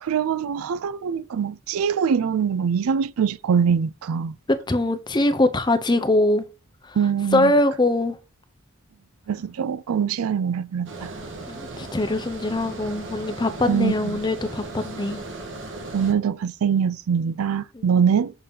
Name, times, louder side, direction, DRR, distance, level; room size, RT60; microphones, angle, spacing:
voice 1, 0.0-4.3 7.0-7.5 9.3-11.1 13.7-13.9 15.9-18.3, right 7 dB, 90° right, 0.4 m, -23 dB
voice 2, 4.7-6.5 6.8-7.0 7.3-8.2 11.5-15.2 17.7-18.0, left 2 dB, 20° left, 0.6 m, -22 dB
Water, 10.9-16.1, right 2 dB, 60° right, 1.2 m, -37 dB
6.8 x 2.8 x 5.4 m
head